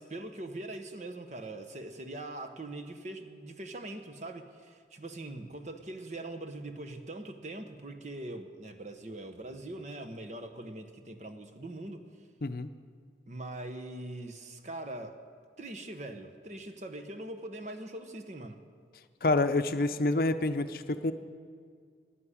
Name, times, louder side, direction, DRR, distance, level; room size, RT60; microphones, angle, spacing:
voice 1, 0.0-12.1 13.3-15.2 15.6-18.6, right 2 dB, 40° right, 7 dB, 1.0 m, -42 dB
voice 2, 19.2-21.1, left 2 dB, 55° left, 9 dB, 0.6 m, -27 dB
11.5 x 10.5 x 9.8 m, 2.1 s
head